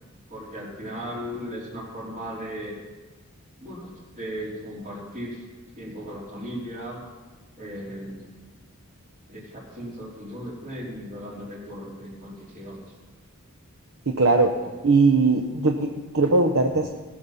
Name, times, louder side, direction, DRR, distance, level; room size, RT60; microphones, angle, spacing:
voice 1, 0.3-2.7 3.6-5.4 5.7-7.0 7.6-8.6 9.3-12.8, equal, 40° right, -3 dB, 3.5 m, -37 dB
voice 2, 14.1-14.5 14.8-16.9, right 3 dB, 65° right, 4 dB, 0.8 m, -20 dB
18.5 x 6.7 x 5.7 m, 1.3 s
head